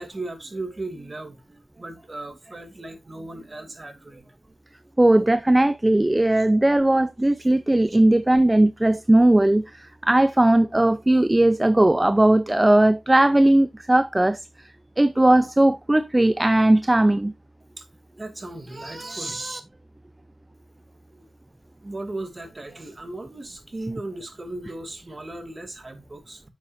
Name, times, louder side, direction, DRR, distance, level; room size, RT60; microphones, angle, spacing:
voice 1, 0.0-4.4 4.9-5.0 6.4-6.5 7.4-7.5 7.9-8.0 17.8-17.9 18.2-19.6 21.1-21.3 21.8-26.4, right 2 dB, 35° right, 2.5 m, -36 dB
voice 2, 5.0-14.4 15.0-17.3, right 1 dB, 20° right, 0.5 m, -18 dB
10.0 x 7.1 x 2.5 m
cardioid pair, 55°, 0 cm